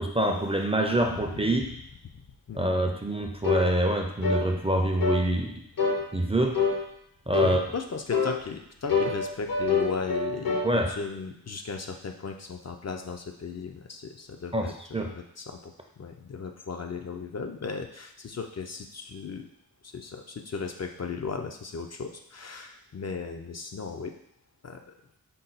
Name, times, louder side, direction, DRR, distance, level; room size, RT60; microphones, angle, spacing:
voice 1, 0.0-1.7 2.6-5.6 6.1-6.6 7.3-7.6 10.6-10.9 14.5-15.1, right 1 dB, 15° right, 2 dB, 0.4 m, -25 dB
sound 1, 3.4-3.7 4.2-4.5 5.0-5.3 5.8-6.0 6.5-6.8 7.3-7.6 8.1-8.4 8.9-10.7, left 4 dB, 70° left, 0.8 m, -26 dB
voice 2, 7.4-14.7 15.1-19.5 19.8-24.1 24.6-24.9, left 5 dB, 45° left, 4 dB, 0.4 m, -36 dB
5.4 x 2.2 x 3.9 m, 0.72 s
wide cardioid pair, 80°, 37 cm